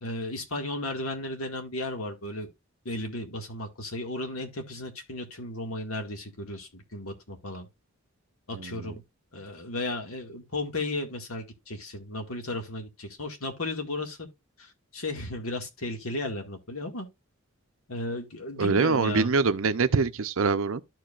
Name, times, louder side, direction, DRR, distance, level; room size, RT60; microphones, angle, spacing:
voice 1, 0.0-2.5 2.9-7.7 8.5-9.0 9.3-14.3 14.6-17.1 17.9-19.3, left 2 dB, 85° left, 2.0 m, -34 dB
voice 2, 8.5-8.9 18.6-20.8, right 4 dB, 75° right, 0.7 m, -24 dB
13.0 x 4.8 x 2.5 m
head